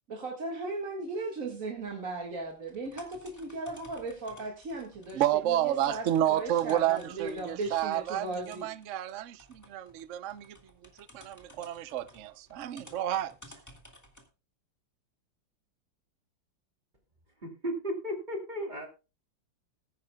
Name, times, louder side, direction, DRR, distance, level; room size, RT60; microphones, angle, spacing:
voice 1, 0.1-8.7, right 2 dB, 45° right, 2.1 m, -37 dB
sound 1, 1.8-14.3, left 1 dB, 10° left, 1.7 m, -56 dB
voice 2, 5.1-13.3, right 12 dB, 70° right, 0.7 m, -30 dB
voice 3, 17.4-18.9, equal, 20° right, 2.7 m, -34 dB
20.0 x 9.7 x 2.3 m
omnidirectional pair, 2.1 m